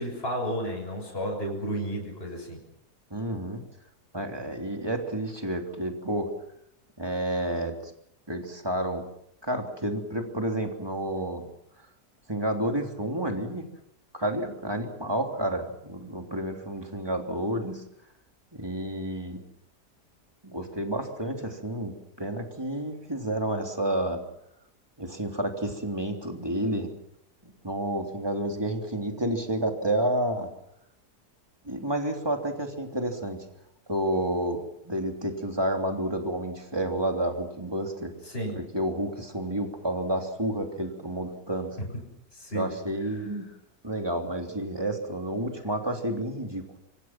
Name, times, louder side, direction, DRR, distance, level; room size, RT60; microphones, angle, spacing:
voice 1, 0.0-2.6 38.3-38.6 42.3-42.7, right 1 dB, 35° left, 0 dB, 7.0 m, -32 dB
voice 2, 3.1-3.6 4.1-6.3 7.0-7.9 8.3-9.0 9.4-11.4 12.3-13.7 14.1-17.8 18.5-19.4 20.4-24.2 25.0-26.9 27.4-30.5 31.6-33.4 33.9-38.1 38.5-41.8 42.5-43.4 43.8-46.7, right 1 dB, 15° right, 3 dB, 3.2 m, -30 dB
26.0 x 25.0 x 6.1 m, 0.78 s
omnidirectional pair, 1.8 m